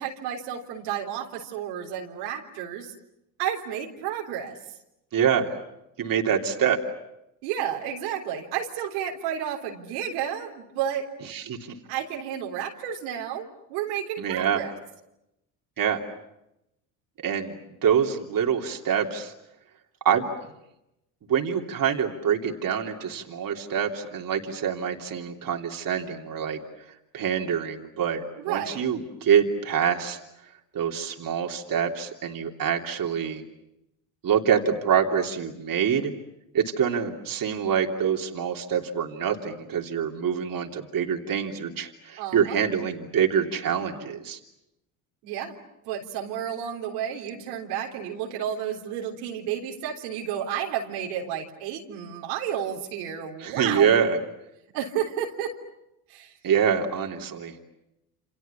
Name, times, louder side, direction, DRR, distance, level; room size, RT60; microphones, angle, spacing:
voice 1, 0.0-2.9 3.4-4.6 7.4-11.1 11.9-14.8 28.4-28.9 42.2-42.6 45.2-45.6 45.9-54.0 54.7-55.6 56.1-56.3, right 9 dB, 90° right, 0 dB, 3.7 m, -31 dB
voice 2, 5.1-5.5 6.0-6.8 11.3-11.7 14.2-14.6 15.8-16.0 17.2-17.6 17.8-19.3 20.0-20.3 21.3-26.6 27.1-30.2 30.7-33.4 34.2-36.1 36.5-44.4 53.4-54.2 56.4-57.5, right 8 dB, 50° right, 2 dB, 3.2 m, -25 dB
28.5 x 27.5 x 7.1 m, 0.88 s
supercardioid pair, 75°, 42 cm